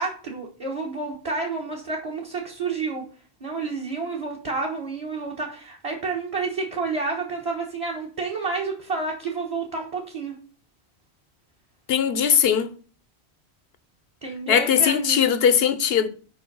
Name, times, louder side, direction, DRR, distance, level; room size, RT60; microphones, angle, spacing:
voice 1, 0.0-3.0 3.4-10.3 14.2-15.3, right 4 dB, 30° right, 1.4 m, -30 dB
voice 2, 11.9-12.7 14.5-16.1, left 8 dB, 65° left, 1.0 m, -20 dB
8.0 x 5.2 x 5.4 m
omnidirectional pair, 1.1 m